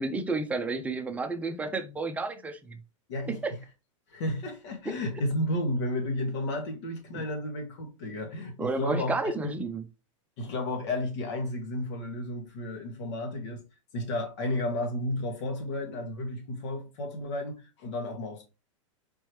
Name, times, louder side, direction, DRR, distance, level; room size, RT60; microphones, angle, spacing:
voice 1, 0.0-2.8 3.3-3.5 8.6-9.8, right 3 dB, 10° right, 0.6 m, -31 dB
voice 2, 3.1-3.6 4.1-9.5 10.4-13.6 13.9-18.5, left 1 dB, 60° left, 1.8 m, -32 dB
4.4 x 3.0 x 3.2 m
hypercardioid pair, 120°, 17 cm